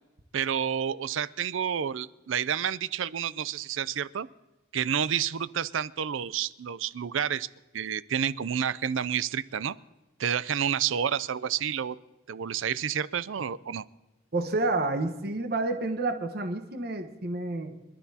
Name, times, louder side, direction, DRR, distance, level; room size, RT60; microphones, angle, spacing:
voice 1, 0.3-4.3 4.7-7.5 7.7-9.8 10.2-12.0 12.3-13.8, right 8 dB, 75° right, 17 dB, 0.5 m, -29 dB
voice 2, 14.3-17.8, right 2 dB, 50° right, 6 dB, 1.2 m, -29 dB
25.0 x 12.5 x 2.8 m, 1.1 s
head